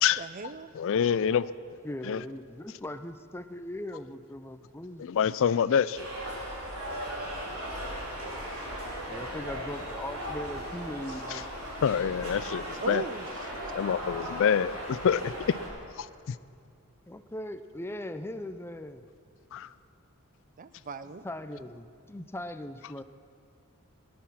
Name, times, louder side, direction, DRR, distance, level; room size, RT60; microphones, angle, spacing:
voice 1, 0.2-0.7 12.8-13.8 20.6-21.2, right 5 dB, 40° right, 13 dB, 0.5 m, -39 dB
voice 2, 0.8-1.5 2.1-2.2 5.0-6.1 11.8-13.0 13.7-15.6 16.0-16.4 19.5-19.7, left 7 dB, 60° left, 16 dB, 0.4 m, -26 dB
voice 3, 1.8-5.1 9.1-11.5 17.1-19.0 21.0-23.0, left 1 dB, 10° left, 10 dB, 0.5 m, -39 dB
sound 1, 6.0-15.7, equal, 85° right, 3.7 m, -37 dB
18.0 x 10.5 x 5.8 m, 2.4 s
head